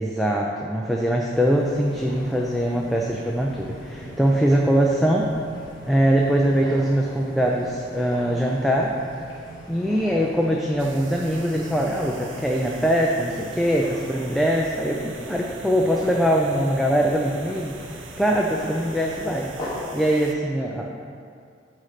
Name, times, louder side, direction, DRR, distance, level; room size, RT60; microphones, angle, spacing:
voice 1, 0.0-5.3 5.9-9.0 9.7-19.5 19.9-21.0, equal, ahead, -2 dB, 0.4 m, -22 dB
sound 1, 1.3-19.8, equal, 20° left, 1.3 m, -40 dB
sound 2, 10.8-20.4, right 4 dB, 80° right, 0.6 m, -43 dB
9.5 x 3.2 x 6.5 m, 2.4 s
head